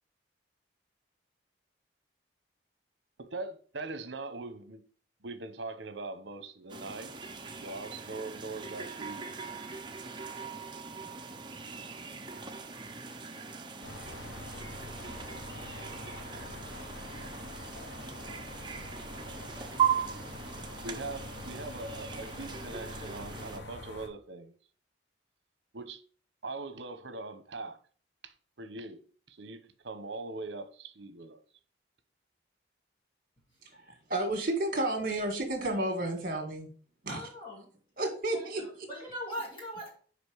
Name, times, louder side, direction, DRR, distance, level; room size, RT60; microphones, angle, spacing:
voice 1, 3.2-4.8 5.2-7.1 7.6-9.3 20.8-24.5 25.7-26.0 26.4-27.8 28.2-29.0 29.3-31.4, right 3 dB, 70° right, 0.9 m, -41 dB
sound 1, 6.7-23.6, right 7 dB, 25° right, 0.7 m, -39 dB
sound 2, 13.8-24.1, left 2 dB, 65° left, 1.3 m, -45 dB
voice 2, 33.7-36.7 37.0-37.3 38.0-38.9, right 2 dB, 50° right, 1.9 m, -32 dB
voice 3, 37.1-37.7 38.3-39.9, equal, 25° left, 2.3 m, -40 dB
5.2 x 5.1 x 6.2 m
head